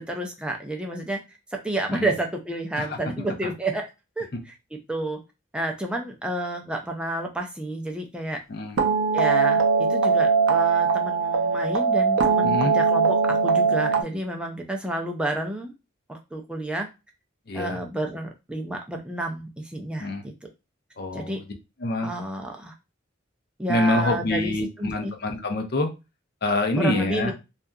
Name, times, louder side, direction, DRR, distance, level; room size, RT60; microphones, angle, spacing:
voice 1, 0.0-1.4 1.6-4.3 4.9-5.2 5.5-8.4 9.1-15.7 16.1-16.9 17.5-20.5 21.1-21.4 22.0-22.7 23.6-25.1 26.8-27.3, right 1 dB, 5° right, 1 dB, 0.3 m, -30 dB
sound 1, 8.8-14.0, right 5 dB, 75° right, 0.4 m, -21 dB
voice 2, 12.4-12.8 17.5-17.8 20.0-20.2 21.0-21.4 21.8-22.1 23.7-25.9 26.4-27.3, left 2 dB, 50° left, 5 dB, 0.5 m, -26 dB
2.7 x 2.3 x 2.2 m, 0.27 s
head